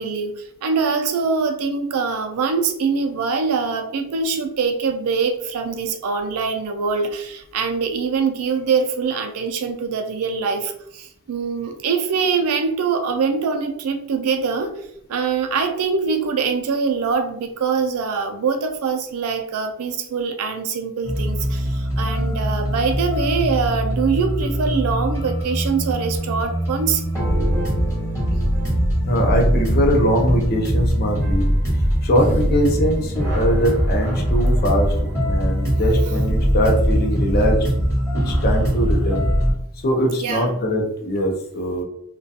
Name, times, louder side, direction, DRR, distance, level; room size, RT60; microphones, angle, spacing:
voice 1, 0.0-27.0 36.1-36.2 40.2-40.6, right 5 dB, 75° right, 6 dB, 0.4 m, -23 dB
sound 1, 21.0-39.5, equal, 15° left, 0.9 m, -21 dB
voice 2, 29.1-31.5 32.0-34.9 35.3-37.6 38.3-39.3 39.8-41.8, equal, 45° left, 1 dB, 0.5 m, -21 dB
2.3 x 2.2 x 2.6 m, 0.73 s
head